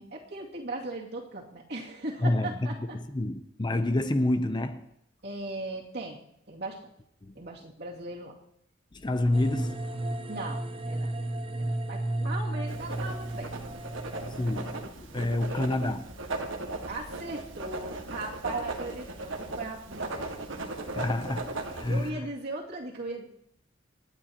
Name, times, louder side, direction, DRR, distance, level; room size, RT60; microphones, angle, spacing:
voice 1, 0.0-3.0 5.2-6.2 6.5-6.9 7.3-8.4 10.3-11.2 11.6-13.5 15.5-15.6 16.9-20.3 21.8-23.3, right 2 dB, 55° right, 2.3 m, -38 dB
voice 2, 2.2-4.9 7.2-7.4 8.9-10.3 14.3-16.0 20.9-22.2, left 1 dB, 25° left, 0.6 m, -29 dB
sound 1, 9.3-14.9, right 1 dB, 30° right, 0.6 m, -34 dB
Writing, 12.7-22.1, right 2 dB, 75° right, 1.5 m, -37 dB
27.0 x 9.7 x 2.9 m
head